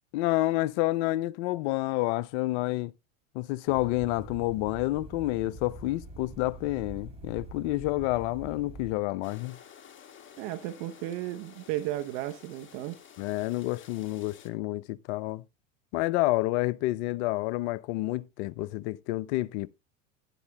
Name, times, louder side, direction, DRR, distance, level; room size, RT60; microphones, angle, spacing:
voice 1, 0.1-2.9 3.3-9.6 13.2-15.4 15.9-19.7, left 18 dB, 55° left, 0.6 m, -29 dB
sound 1, 3.7-8.9, right 1 dB, 15° right, 3.1 m, -45 dB
sound 2, 9.2-14.5, left 8 dB, 30° left, 1.5 m, -52 dB
voice 2, 10.4-13.0, right 14 dB, 55° right, 0.9 m, -34 dB
13.0 x 10.5 x 2.2 m
hypercardioid pair, 90°, 41 cm